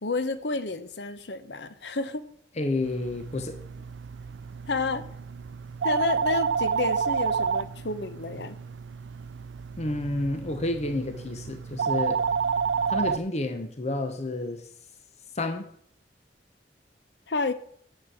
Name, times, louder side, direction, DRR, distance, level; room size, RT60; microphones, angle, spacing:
voice 1, 0.0-2.3 4.7-5.1 5.8-8.6 17.3-17.5, left 3 dB, 70° left, 12 dB, 0.9 m, -30 dB
voice 2, 2.6-3.6 9.8-12.2 12.9-14.6 15.3-15.7, left 2 dB, 40° left, 7 dB, 0.9 m, -30 dB
sound 1, 2.8-13.2, right 6 dB, 90° right, 0.4 m, -30 dB
9.7 x 6.5 x 7.7 m, 0.66 s
head